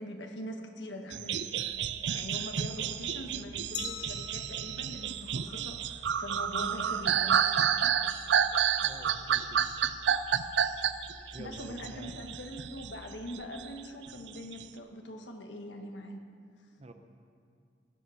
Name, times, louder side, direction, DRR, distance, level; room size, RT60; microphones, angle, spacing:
voice 1, 0.0-1.4 2.1-7.6 11.4-16.2, left 1 dB, 85° left, 4 dB, 1.4 m, -42 dB
sound 1, 1.1-12.9 13.3-14.6, right 8 dB, 75° right, 0.5 m, -30 dB
sound 2, 1.6-13.3, left 1 dB, 40° left, 1.2 m, -53 dB
Glass, 3.7-6.5, left 9 dB, 65° left, 0.9 m, -45 dB
voice 2, 8.8-9.4 11.3-12.3 16.8-16.9, right 2 dB, 35° right, 7 dB, 0.8 m, -47 dB
17.0 x 7.9 x 5.7 m, 2.4 s
head